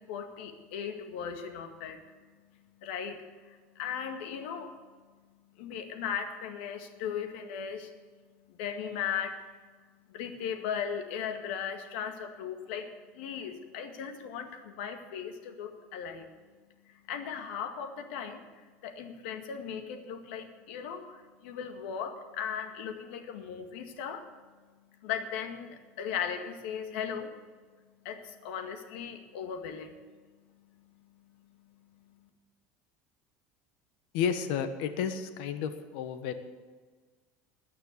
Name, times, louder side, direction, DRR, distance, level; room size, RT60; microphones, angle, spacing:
voice 1, 0.0-2.0 2.8-4.7 5.6-7.9 8.5-9.4 10.1-16.3 16.9-24.3 25.0-27.3 28.0-29.9 30.7-31.3 31.6-32.3, left 7 dB, 85° left, 5 dB, 2.0 m, -38 dB
voice 2, 34.1-36.3, left 7 dB, 65° left, 9 dB, 1.4 m, -31 dB
20.0 x 6.8 x 8.2 m, 1.4 s
cardioid pair, 175°, 6 cm